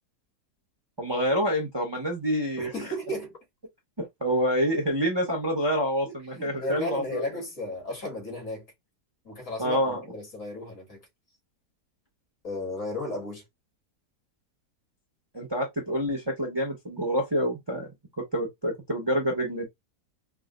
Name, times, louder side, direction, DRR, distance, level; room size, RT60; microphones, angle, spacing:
voice 1, 1.0-2.7 4.2-7.2 9.6-10.0 15.3-17.9 18.2-19.6, equal, 20° right, 0.9 m, -27 dB
voice 2, 2.6-3.3 6.1-8.7 9.2-11.0 12.4-13.4, left 1 dB, 50° left, 2.6 m, -34 dB
4.8 x 2.5 x 2.4 m
omnidirectional pair, 1.8 m